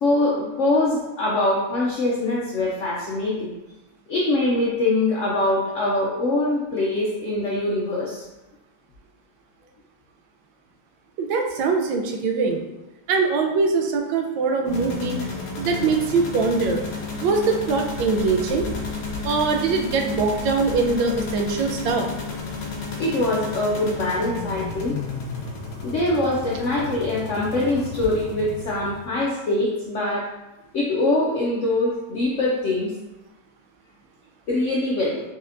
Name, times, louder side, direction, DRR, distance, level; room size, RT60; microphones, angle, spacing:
voice 1, 0.0-3.5 4.1-8.2 23.0-25.0 25.8-30.3 30.7-32.9 34.5-35.2, left 2 dB, 70° left, -5 dB, 0.7 m, -23 dB
voice 2, 11.2-12.6 13.1-15.2 15.6-16.8 17.2-18.7 19.2-22.0, right 4 dB, 90° right, 3 dB, 1.4 m, -22 dB
sound 1, 14.7-29.2, left 3 dB, 55° left, 1.2 m, -32 dB
4.2 x 4.1 x 2.5 m, 1.0 s
omnidirectional pair, 2.0 m